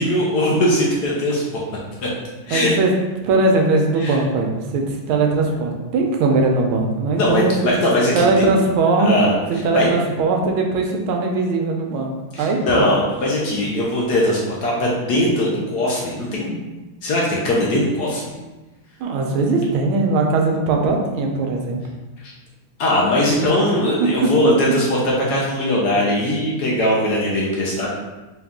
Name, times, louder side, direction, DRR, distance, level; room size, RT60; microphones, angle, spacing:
voice 1, 0.0-2.1 2.5-2.7 3.9-4.2 7.1-8.4 9.0-9.3 9.7-9.9 12.3-16.6 17.0-18.3 22.2-22.3 22.8-27.9, left 1 dB, 70° left, -4 dB, 1.0 m, -20 dB
voice 2, 2.5-2.9 3.2-7.7 8.1-9.2 9.5-12.1 12.4-12.9 19.0-21.8 24.2-24.5, right 3 dB, 85° right, 2 dB, 1.4 m, -20 dB
4.1 x 2.3 x 3.5 m, 1.1 s
omnidirectional pair, 2.3 m